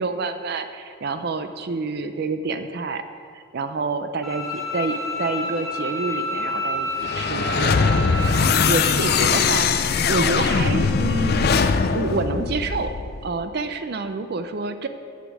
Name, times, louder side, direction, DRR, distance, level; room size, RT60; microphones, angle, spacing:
voice 1, 0.0-3.0 3.3-13.0 13.2-14.9, right 3 dB, 50° right, 9 dB, 0.5 m, -28 dB
Bowed string instrument, 4.2-9.2, left 1 dB, ahead, 1.8 m, -29 dB
sound 1, 7.0-13.2, left 5 dB, 45° left, 0.4 m, -21 dB
8.2 x 8.1 x 6.1 m, 2.3 s
head